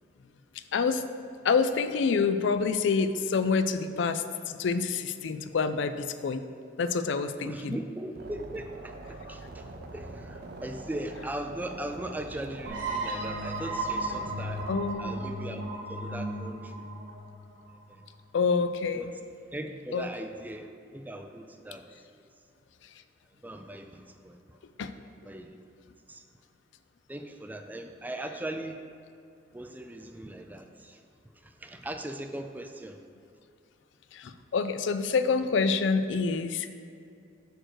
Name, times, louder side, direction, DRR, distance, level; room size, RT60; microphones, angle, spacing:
voice 1, 0.7-1.0 1.4-6.4 6.8-7.8 14.7-15.1 18.3-19.1 19.9-20.1 24.8-24.9 34.1-36.7, left 5 dB, 70° left, 11 dB, 0.4 m, -27 dB
voice 2, 7.4-14.6 15.0-16.9 19.0-19.2 19.5-21.8 23.4-24.4 25.2-25.6 26.1-26.2 27.1-28.8 29.5-31.0 31.4-33.0, right 1 dB, 10° right, 6 dB, 0.3 m, -39 dB
sound 1, 8.2-14.9, right 2 dB, 55° right, 0.6 m, -44 dB
sound 2, 12.7-18.1, right 2 dB, 80° right, 1.2 m, -35 dB
6.5 x 6.3 x 4.6 m, 2.5 s
head